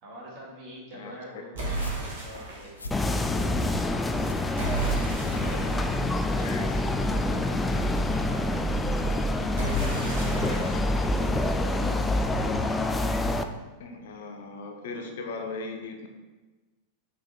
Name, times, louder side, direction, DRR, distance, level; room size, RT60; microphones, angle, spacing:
voice 1, 0.0-4.5 5.3-8.6 9.3-10.6 10.9-12.5, equal, 40° right, -3 dB, 2.2 m, -46 dB
sound 1, 1.5-2.8 4.5-7.3 9.5-12.3, right 2 dB, 60° right, 2.3 m, -34 dB
sound 2, 1.8-6.1, left 2 dB, 75° left, 0.5 m, -44 dB
sound 3, 2.9-13.4, left 1 dB, 10° left, 0.4 m, -26 dB
voice 2, 6.3-6.7 9.8-10.8 13.8-16.1, left 3 dB, 55° left, 4 dB, 0.9 m, -39 dB
5.9 x 5.0 x 4.2 m, 1.2 s
figure-of-eight pair, 90°, 0 cm